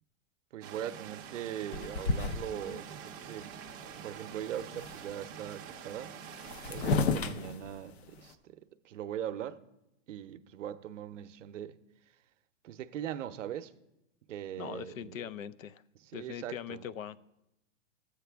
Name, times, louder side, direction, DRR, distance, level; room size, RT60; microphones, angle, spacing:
voice 1, 0.5-3.6 4.0-6.1 6.7-8.6 8.8-9.6 10.1-11.8 12.6-13.7 14.3-15.3 16.0-16.9, right 10 dB, 70° right, 0.7 m, -40 dB
sound 1, 0.6-7.0, right 8 dB, 20° right, 0.5 m, -46 dB
sound 2, 1.7-2.8 3.4-3.5 3.7-4.2 4.4-5.1 6.0-6.1 6.3-8.3, left 4 dB, 55° left, 0.8 m, -33 dB
voice 2, 14.6-15.8 16.1-17.2, left 9 dB, 90° left, 0.6 m, -41 dB
15.0 x 8.1 x 3.4 m
hypercardioid pair, 165°, 39 cm